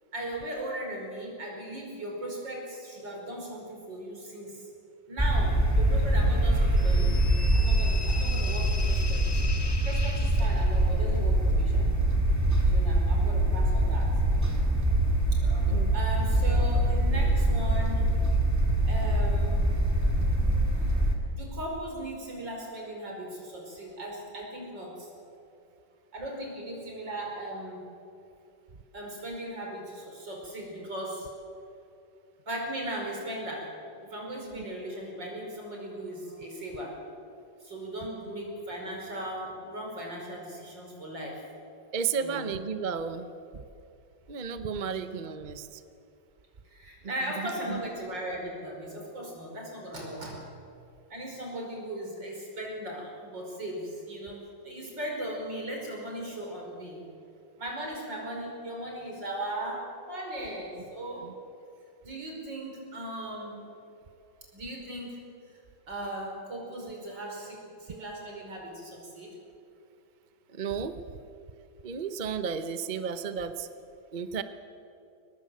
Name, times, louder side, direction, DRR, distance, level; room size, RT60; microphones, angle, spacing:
voice 1, 0.1-4.6 5.1-7.2 7.5-9.4 9.9-11.9 12.6-14.1 15.3-18.3 18.8-19.6 21.3-25.3 26.1-27.8 28.9-31.3 32.5-33.7 34.0-37.0 37.6-41.4 42.2-42.4 46.7-50.4 51.1-57.0 57.6-61.2 62.0-63.7 64.5-65.2 65.5-65.6 65.9-69.3, right 1 dB, 75° right, 0 dB, 5.9 m, -38 dB
sound 1, 5.2-21.2, right 1 dB, 10° right, 2.6 m, -24 dB
sound 2, 6.8-10.9, left 3 dB, 25° left, 0.6 m, -39 dB
voice 2, 41.9-43.6 44.3-45.8 47.4-47.8 61.2-61.3 70.5-70.9 71.8-73.7 74.1-74.4, right 6 dB, 35° right, 10 dB, 0.8 m, -33 dB
23.0 x 20.0 x 7.8 m, 2.6 s
omnidirectional pair, 2.0 m